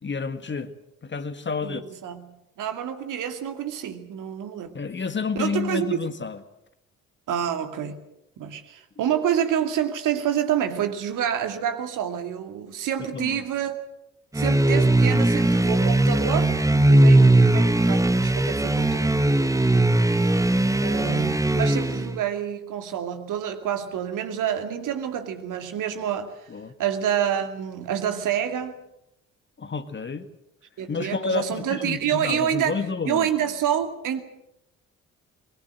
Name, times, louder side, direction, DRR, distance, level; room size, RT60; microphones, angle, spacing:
voice 1, 0.0-0.7 1.0-1.9 4.7-6.4 13.1-13.4 26.5-26.7 29.6-30.3 30.9-33.3, left 5 dB, 30° left, 1.9 m, -30 dB
voice 2, 1.6-4.7 5.3-6.0 7.3-8.0 8.4-13.8 14.3-19.4 20.8-26.5 26.8-28.7 30.8-34.2, right 9 dB, 55° right, 2.4 m, -28 dB
sound 1, 14.3-22.2, right 1 dB, 10° right, 1.5 m, -19 dB
23.0 x 22.5 x 7.7 m
figure-of-eight pair, 45°, 38 cm